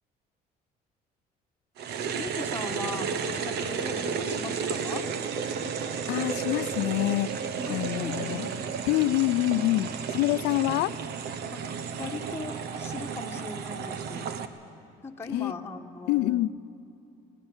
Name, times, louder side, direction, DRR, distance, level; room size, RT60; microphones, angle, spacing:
sound 1, 1.8-14.5, right 6 dB, 80° right, 1.2 m, -33 dB
voice 1, 2.2-5.1 7.7-8.8 11.5-11.7 12.0-14.3 15.0-16.4, left 3 dB, 15° left, 1 dB, 1.5 m, -39 dB
voice 2, 6.1-8.5 8.9-11.0 15.3-15.5 16.1-16.6, left 16 dB, 90° left, 17 dB, 0.5 m, -26 dB
19.0 x 19.0 x 8.9 m, 2.8 s
cardioid pair, 110°, 17 cm